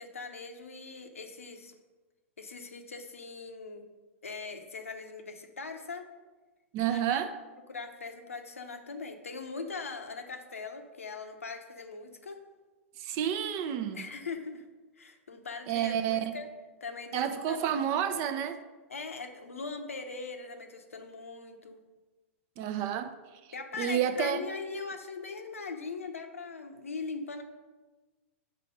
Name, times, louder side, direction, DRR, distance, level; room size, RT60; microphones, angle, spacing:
voice 1, 0.0-1.7 2.4-3.9 4.2-6.1 6.9-7.2 7.7-12.4 13.9-14.6 15.0-16.5 16.8-18.4 18.9-21.8 23.5-27.4, left 4 dB, 90° left, 0.8 m, -41 dB
voice 2, 6.7-7.3 13.0-14.0 15.7-16.4 17.1-18.6 22.6-23.1 23.8-24.4, right 9 dB, 45° right, 0.6 m, -30 dB
5.7 x 4.8 x 5.2 m
hypercardioid pair, 110°, 7 cm